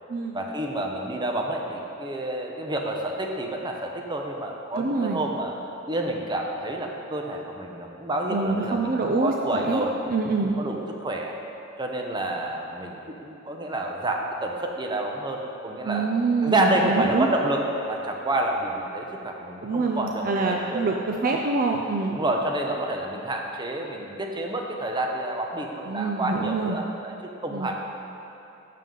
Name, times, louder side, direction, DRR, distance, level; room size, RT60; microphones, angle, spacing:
voice 1, 0.3-5.5 5.9-9.9 10.4-11.3 11.8-16.1 16.4-21.0 22.1-27.1 27.4-27.8, right 1 dB, 20° right, 1 dB, 0.8 m, -29 dB
voice 2, 4.8-5.2 8.3-10.5 15.8-17.3 19.6-22.1 25.9-26.8 27.5-27.7, right 3 dB, 45° right, 1 dB, 0.5 m, -26 dB
10.5 x 7.5 x 3.8 m, 2.8 s
head